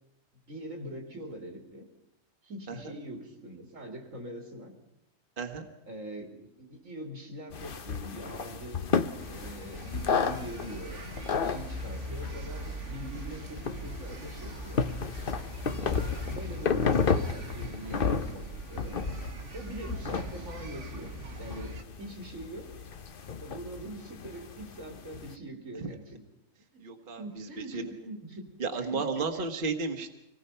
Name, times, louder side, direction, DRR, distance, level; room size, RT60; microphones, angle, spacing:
voice 1, 0.5-1.8 2.4-4.7 5.9-8.9 9.2-11.0 11.4-14.8 15.8-19.0 19.5-21.1 21.4-22.7 23.4-26.2 26.7-26.8 27.2-28.5 28.9-29.4, right 1 dB, 80° right, 4 dB, 3.2 m, -43 dB
voice 2, 5.4-5.7 25.8-25.9 26.8-27.8 28.6-30.1, right 4 dB, 40° right, 4 dB, 1.5 m, -33 dB
sound 1, 7.5-25.3, left 5 dB, 45° left, 1.0 m, -33 dB
sound 2, 9.2-21.8, right 1 dB, 65° right, 1.9 m, -41 dB
25.5 x 18.5 x 5.6 m, 0.86 s
omnidirectional pair, 1.4 m